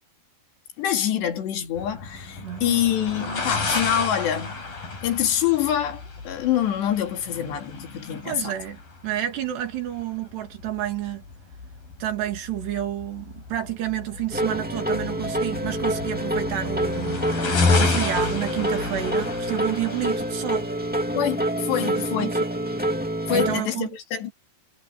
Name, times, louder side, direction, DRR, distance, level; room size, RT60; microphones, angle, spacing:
voice 1, 0.8-4.6 5.0-8.5 21.2-24.3, left 10 dB, 75° left, 4.8 m, -26 dB
sound 1, 1.8-21.5, left 3 dB, 55° left, 8.7 m, -31 dB
voice 2, 2.4-2.8 8.2-11.2 12.0-17.2 17.5-20.7 21.8-22.4 23.3-23.9, right 12 dB, 70° right, 4.7 m, -30 dB
sound 2, 14.3-23.6, right 1 dB, 10° right, 0.4 m, -27 dB
omnidirectional pair, 5.0 m